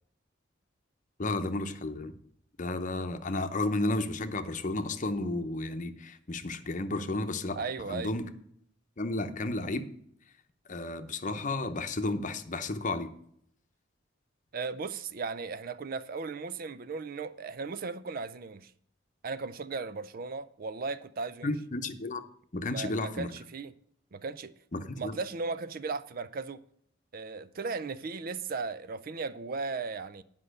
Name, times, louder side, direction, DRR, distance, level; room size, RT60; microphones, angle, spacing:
voice 1, 1.2-2.1 2.6-8.3 9.0-9.9 10.7-13.1 21.4-22.2 22.5-23.3 24.7-25.2, left 2 dB, 40° left, 0.8 m, -32 dB
voice 2, 7.6-8.1 14.5-18.7 19.2-21.5 22.7-23.7 24.1-24.5 25.0-26.6 27.1-30.2, right 4 dB, 50° right, 0.5 m, -36 dB
10.0 x 5.5 x 6.6 m
head